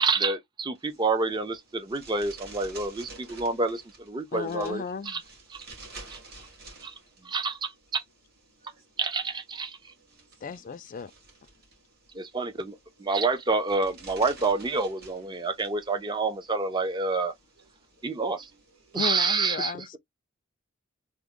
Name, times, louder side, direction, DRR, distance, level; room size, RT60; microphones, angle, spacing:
voice 1, 0.0-5.2 5.5-5.7 6.1-6.2 6.8-6.9 7.2-8.0 9.0-9.8 12.1-17.3 18.0-18.5 18.9-19.7, right 3 dB, 20° right, 0.5 m, -28 dB
sound 1, 0.8-19.0, right 3 dB, 50° right, 1.9 m, -51 dB
voice 2, 3.1-3.6 6.9-7.0 8.6-8.9 9.9-10.7 11.5-11.6 13.0-13.1 14.3-14.5 17.6-17.7 18.0-19.0, right 3 dB, 70° right, 1.7 m, -64 dB
voice 3, 4.3-5.2 10.4-11.1 19.0-20.0, left 6 dB, 40° left, 0.4 m, -34 dB
3.4 x 2.1 x 3.6 m
head